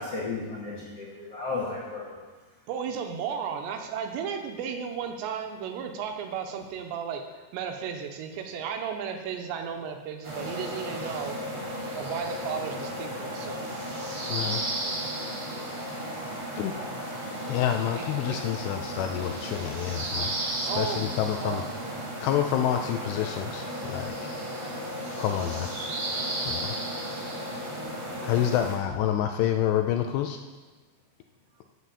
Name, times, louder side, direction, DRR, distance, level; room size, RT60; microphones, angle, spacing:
voice 1, 0.0-2.2, left 3 dB, 55° left, -6 dB, 1.8 m, -34 dB
voice 2, 2.7-11.4 11.9-13.7 17.9-18.4 20.7-22.1 28.2-28.4, right 7 dB, 80° right, 4 dB, 2.9 m, -34 dB
sound 1, 10.2-28.8, right 1 dB, 30° right, 3.3 m, -34 dB
voice 3, 14.3-14.6 16.6-16.8 17.5-21.6 22.2-24.3 25.1-25.7 26.5-26.6 28.2-30.4, left 10 dB, 85° left, 6 dB, 2.5 m, -28 dB
8.2 x 7.8 x 7.0 m, 1.3 s
omnidirectional pair, 5.2 m